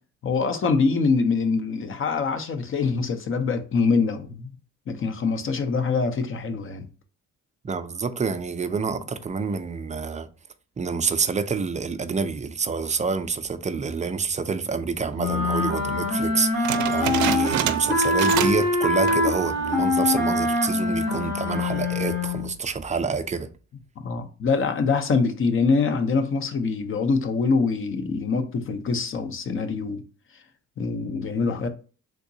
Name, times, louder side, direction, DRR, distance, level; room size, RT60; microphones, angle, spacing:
voice 1, 0.2-4.5 4.9-6.9 24.0-30.0 30.8-31.7, left 4 dB, 45° left, 0.7 m, -24 dB
voice 2, 7.6-10.3 10.8-23.5, right 5 dB, 25° right, 0.4 m, -27 dB
sound 1, 15.2-22.5, left 2 dB, 80° left, 1.7 m, -24 dB
sound 2, 16.6-18.7 19.0-19.3 19.8-19.9 20.6-21.0, right 10 dB, 75° right, 0.5 m, -28 dB
3.6 x 2.9 x 2.7 m
cardioid pair, 90°, 30 cm